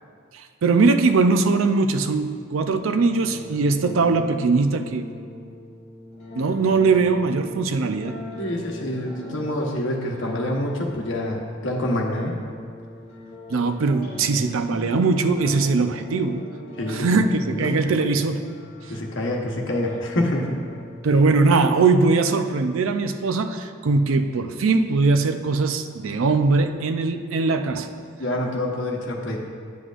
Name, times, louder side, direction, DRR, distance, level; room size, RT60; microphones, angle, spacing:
voice 1, 0.6-5.1 6.4-8.2 13.5-16.5 16.9-18.5 21.0-27.9, right 3 dB, 90° right, 8 dB, 0.5 m, -21 dB
sound 1, 3.1-22.1, left 1 dB, 35° left, 1.9 m, -40 dB
voice 2, 8.4-12.3 16.8-17.7 18.9-20.6 28.2-29.4, left 1 dB, 70° left, 0 dB, 1.0 m, -26 dB
9.3 x 7.9 x 2.5 m, 2.3 s
head